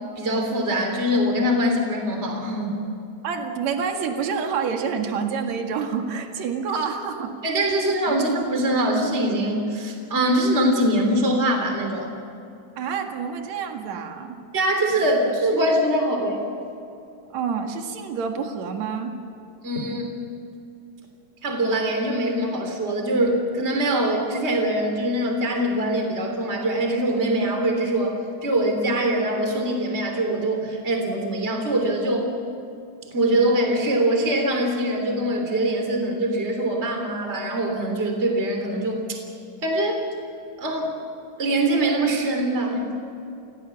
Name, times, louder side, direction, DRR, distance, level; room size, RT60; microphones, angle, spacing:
voice 1, 0.2-2.8 7.4-12.2 14.5-16.4 19.6-20.1 21.4-28.2 28.4-32.3 33.1-39.2 39.6-40.0 40.6-40.9 41.4-42.8, right 1 dB, 20° right, 3 dB, 3.4 m, -23 dB
voice 2, 3.2-7.3 12.8-14.4 17.3-19.1, right 6 dB, 65° right, 4 dB, 3.1 m, -28 dB
29.0 x 17.0 x 7.2 m, 2.8 s
omnidirectional pair, 3.5 m